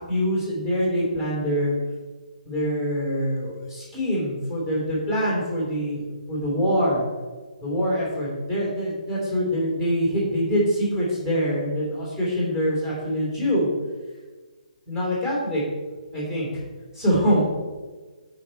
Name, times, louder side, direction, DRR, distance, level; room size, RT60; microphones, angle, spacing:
voice 1, 0.1-1.8 2.4-7.0 7.6-13.7 14.9-15.6 16.1-16.5 16.9-17.4, equal, 5° right, -5 dB, 2.8 m, -24 dB
12.5 x 5.2 x 4.4 m, 1.4 s
hypercardioid pair, 175°, 4 cm